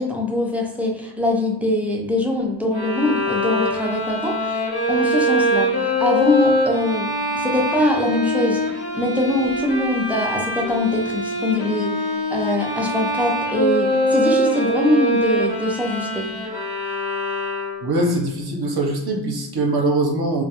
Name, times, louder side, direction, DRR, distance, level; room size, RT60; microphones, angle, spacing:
voice 1, 0.0-16.4, left 1 dB, 5° right, -1 dB, 0.4 m, -23 dB
Bowed string instrument, 2.7-18.0, equal, 60° left, 0.7 m, -23 dB
voice 2, 17.8-20.4, right 2 dB, 55° right, 0 dB, 0.6 m, -22 dB
2.2 x 2.0 x 2.8 m, 0.94 s
wide cardioid pair, 75°, 46 cm